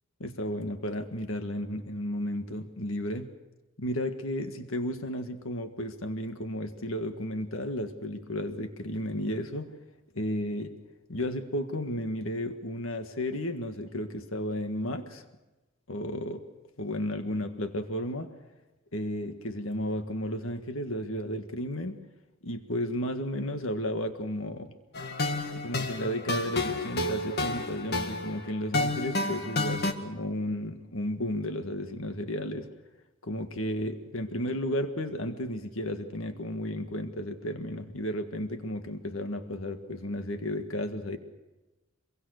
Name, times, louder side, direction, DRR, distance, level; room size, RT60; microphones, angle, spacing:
voice 1, 0.2-3.3 3.8-9.7 10.1-10.8 11.1-15.2 15.9-16.4 16.8-18.3 18.9-22.0 22.4-24.7 25.5-32.7 33.2-41.2, left 1 dB, 80° left, 7 dB, 1.8 m, -33 dB
sound 1, 24.9-29.9, left 2 dB, 50° left, 1.9 m, -30 dB
25.0 x 23.5 x 6.5 m, 1.1 s
head